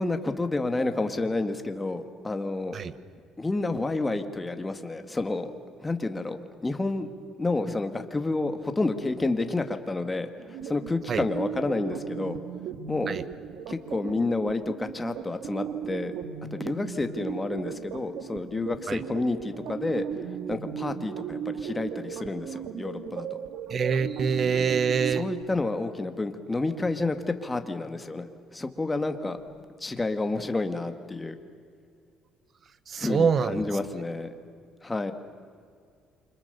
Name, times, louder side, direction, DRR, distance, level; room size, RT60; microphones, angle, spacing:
voice 1, 0.0-2.8 3.4-5.5 5.8-7.1 7.4-12.4 12.9-13.1 13.7-16.1 16.5-20.0 20.5-23.3 25.1-29.4 29.8-31.4 33.0-34.3 34.8-35.1, left 2 dB, 15° left, 8 dB, 1.9 m, -30 dB
sound 1, 10.4-25.4, right 8 dB, 75° right, 2.0 m, -36 dB
voice 2, 23.7-25.2 32.9-33.6, right 6 dB, 40° right, 15 dB, 1.2 m, -25 dB
28.5 x 26.0 x 6.9 m, 2.2 s
cardioid pair, 120°, 0 cm